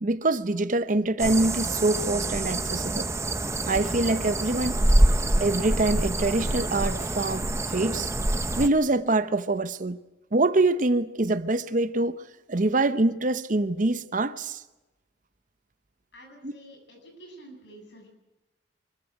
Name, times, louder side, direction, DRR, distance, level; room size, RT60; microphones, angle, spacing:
voice 1, 0.0-3.1 3.7-4.8 5.4-8.1 8.6-10.0 10.3-12.2 12.5-14.6 16.4-16.5, right 2 dB, 45° right, 0.9 m, -25 dB
sound 1, 1.2-8.7, right 1 dB, 15° right, 0.9 m, -26 dB
voice 2, 16.1-18.1, right 1 dB, 80° left, 7.8 m, -48 dB
25.0 x 14.5 x 9.2 m
head